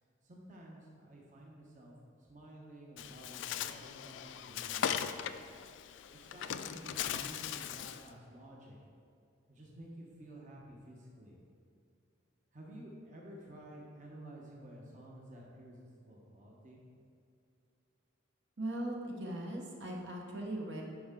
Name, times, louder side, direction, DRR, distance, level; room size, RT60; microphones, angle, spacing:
voice 1, 0.2-1.9 2.2-5.3 6.1-8.8 9.5-11.4 12.5-16.8, right 1 dB, 40° right, -3 dB, 1.0 m, -52 dB
Bird, 3.0-8.1, left 9 dB, 65° left, 0.3 m, -39 dB
voice 2, 18.6-20.8, right 1 dB, 65° right, -1 dB, 1.1 m, -39 dB
9.4 x 5.5 x 3.7 m, 2.4 s
head